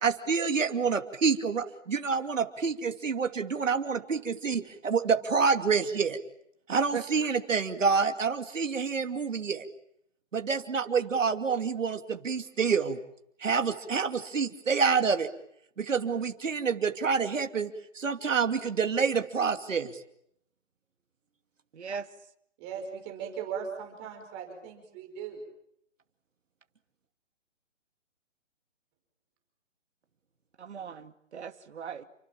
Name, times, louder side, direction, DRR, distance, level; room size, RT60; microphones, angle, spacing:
voice 1, 0.0-6.2 6.7-9.6 10.3-13.0 13.4-15.3 15.8-19.9, right 5 dB, 80° right, 7 dB, 2.7 m, -27 dB
voice 2, 21.7-22.1 30.6-32.0, right 7 dB, 60° right, 8 dB, 2.3 m, -38 dB
voice 3, 22.6-25.4, right 7 dB, 20° right, 4 dB, 5.4 m, -38 dB
29.5 x 25.0 x 7.4 m, 0.73 s
hypercardioid pair, 160°, 38 cm